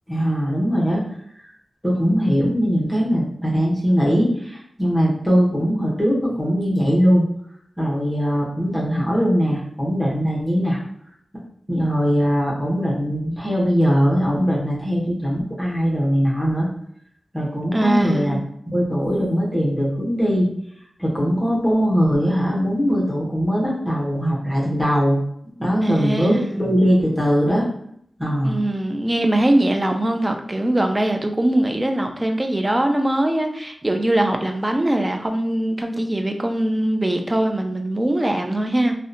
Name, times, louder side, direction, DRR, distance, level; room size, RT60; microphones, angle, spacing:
voice 1, 0.1-1.0 1.8-7.2 7.8-10.8 11.7-16.7 17.3-18.4 18.7-20.5 21.0-25.2 25.6-27.7 28.2-28.6, equal, 10° left, -5 dB, 0.8 m, -20 dB
voice 2, 17.7-18.4 25.8-26.6 28.4-39.0, right 1 dB, 20° right, 4 dB, 0.3 m, -21 dB
2.7 x 2.1 x 2.5 m, 0.68 s
wide cardioid pair, 90°, 0 cm